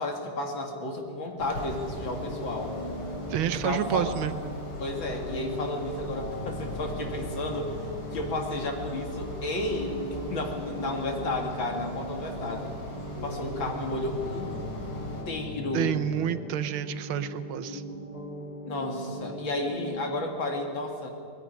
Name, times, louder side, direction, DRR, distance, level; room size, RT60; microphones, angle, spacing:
voice 1, 0.0-2.8 3.5-4.1 4.8-7.8 8.1-12.8 13.2-14.6 15.3-15.9 18.6-21.1, left 2 dB, 65° left, 3 dB, 2.8 m, -32 dB
sound 1, 1.4-15.2, left 1 dB, 85° left, 4.3 m, -40 dB
sound 2, 1.9-20.0, equal, 45° left, 2.7 m, -39 dB
voice 2, 3.3-4.3 15.7-17.8, right 10 dB, 75° right, 11 dB, 1.6 m, -29 dB
20.0 x 16.0 x 9.8 m, 2.4 s
omnidirectional pair, 2.3 m